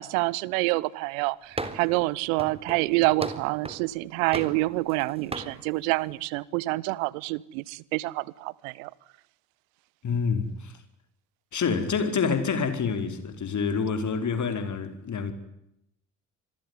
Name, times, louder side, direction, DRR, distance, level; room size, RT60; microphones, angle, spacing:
voice 1, 0.0-8.9, right 21 dB, 70° right, 1.0 m, -27 dB
sound 1, 1.6-2.0 2.4-3.9 4.3-5.0 5.3-5.6, right 2 dB, 15° right, 3.9 m, -36 dB
voice 2, 10.0-10.8 11.5-15.3, left 5 dB, 45° left, 4.8 m, -27 dB
27.5 x 21.5 x 9.9 m
figure-of-eight pair, 55°, 42 cm